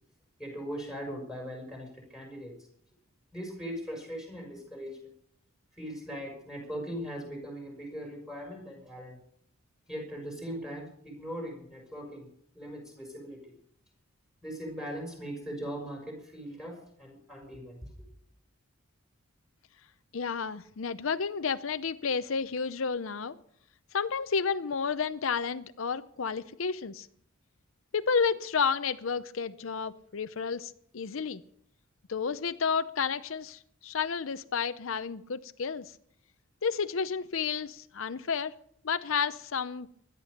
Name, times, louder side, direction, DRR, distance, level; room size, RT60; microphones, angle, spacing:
voice 1, 0.4-2.6 3.3-5.0 5.7-9.2 9.9-12.3 12.5-13.4 14.4-18.1, equal, 5° right, 1 dB, 6.1 m, -40 dB
voice 2, 20.1-23.4 23.9-27.1 27.9-31.4 32.1-35.9 36.6-38.5 38.8-39.9, left 5 dB, 70° left, 12 dB, 0.6 m, -31 dB
17.5 x 12.5 x 6.6 m, 0.67 s
head